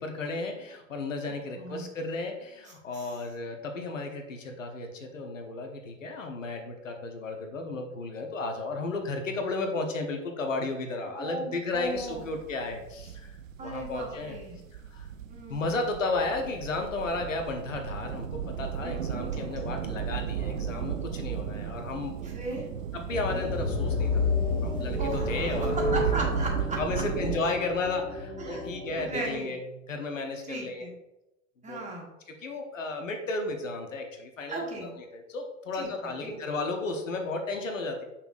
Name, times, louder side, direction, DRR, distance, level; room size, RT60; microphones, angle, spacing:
voice 1, 0.0-14.4 14.9-15.1 15.5-22.2 22.9-24.2 24.6-26.0 26.8-29.6 29.9-30.9 31.7-31.8 32.4-34.6 35.1-38.0, left 3 dB, 75° left, 4 dB, 1.1 m, -33 dB
voice 2, 1.2-1.8 2.7-3.2 11.1-12.3 13.6-14.6 15.3-15.8 18.8-19.1 22.2-22.7 25.0-27.0 28.4-28.6 28.9-29.5 30.4-30.9 31.6-32.1 34.5-34.9 35.7-36.3, right 2 dB, 20° right, -1 dB, 1.6 m, -37 dB
sound 1, 11.7-27.4, right 8 dB, 85° right, 0.5 m, -35 dB
sound 2, 23.1-29.4, left 4 dB, 10° left, 1.0 m, -31 dB
6.9 x 5.6 x 2.5 m, 0.94 s
figure-of-eight pair, 85°, 39 cm